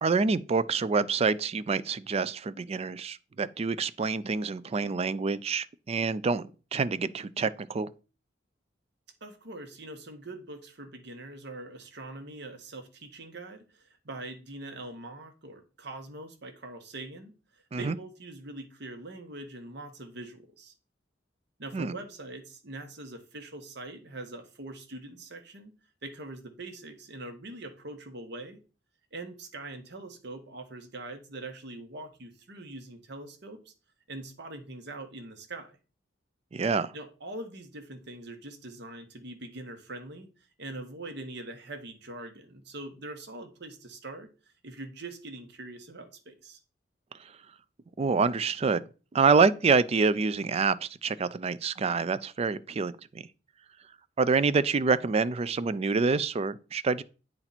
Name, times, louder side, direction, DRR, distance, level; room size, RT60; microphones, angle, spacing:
voice 1, 0.0-7.9 17.7-18.0 21.7-21.9 36.5-36.9 48.0-48.8 49.1-53.2 54.2-57.0, right 4 dB, 35° right, 0.4 m, -27 dB
voice 2, 9.2-20.7 21.6-25.7 26.0-28.6 29.1-33.7 34.1-35.8 36.9-40.3 40.6-44.3 44.6-46.6, right 2 dB, 65° right, 1.3 m, -43 dB
8.9 x 4.4 x 4.1 m
head